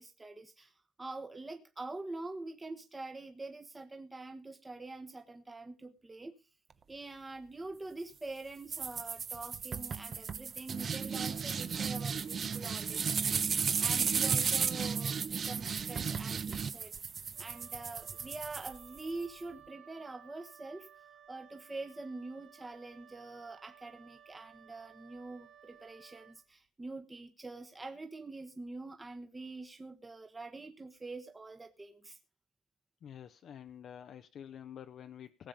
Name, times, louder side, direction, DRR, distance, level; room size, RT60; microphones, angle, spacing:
voice 1, 0.0-6.4 6.9-17.1 17.4-20.9 21.3-32.2, right 2 dB, 20° right, 6 dB, 1.3 m, -45 dB
sound 1, 8.7-19.2, right 6 dB, 50° right, 1.0 m, -34 dB
Wind instrument woodwind instrument, 17.3-26.4, right 10 dB, 70° right, 2.0 m, -58 dB
voice 2, 33.0-35.5, left 9 dB, 65° left, 9 dB, 0.7 m, -48 dB
18.0 x 7.5 x 5.2 m, 0.31 s
cardioid pair, 90°, 0 cm